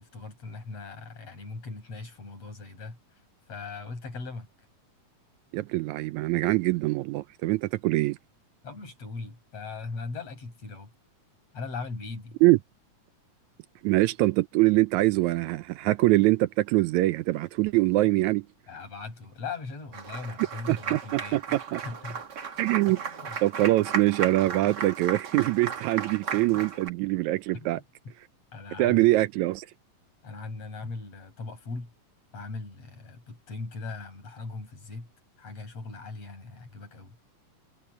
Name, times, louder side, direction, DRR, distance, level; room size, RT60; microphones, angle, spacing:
voice 1, 0.0-3.2 3.5-4.7 8.6-10.9 11.5-12.4 18.7-22.2 22.9-23.4 26.5-26.6 27.5-27.8 28.5-29.3 30.2-31.9 32.3-35.1 35.4-37.2, left 3 dB, 50° left, 6.8 m, -39 dB
voice 2, 5.5-8.2 12.4-12.6 13.8-18.5 20.7-21.8 22.6-23.0 23.4-27.8 28.8-29.7, right 18 dB, 80° right, 1.7 m, -24 dB
Applause, 19.9-26.9, right 6 dB, 40° right, 1.6 m, -36 dB
omnidirectional pair, 3.8 m